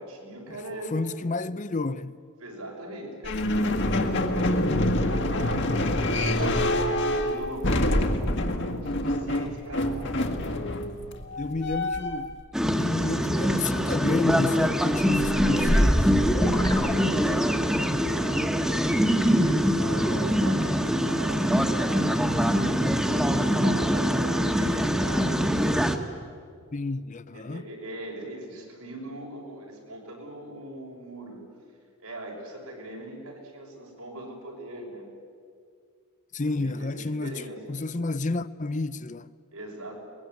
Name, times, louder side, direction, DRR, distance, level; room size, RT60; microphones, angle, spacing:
voice 1, 0.0-1.0 2.4-10.2 11.3-11.4 15.3-16.0 16.3-25.5 27.3-31.4 32.0-35.1 36.4-37.6 39.5-39.9, right 1 dB, 90° right, 6.6 m, -40 dB
voice 2, 0.9-2.2 11.4-16.0 26.7-27.7 36.3-39.3, left 3 dB, 35° left, 0.6 m, -30 dB
sound 1, 3.2-12.3, left 1 dB, 55° left, 1.8 m, -26 dB
sound 2, 12.5-26.0, equal, 5° right, 1.3 m, -24 dB
sound 3, 15.0-17.7, equal, 15° left, 1.4 m, -25 dB
23.5 x 21.0 x 9.4 m
head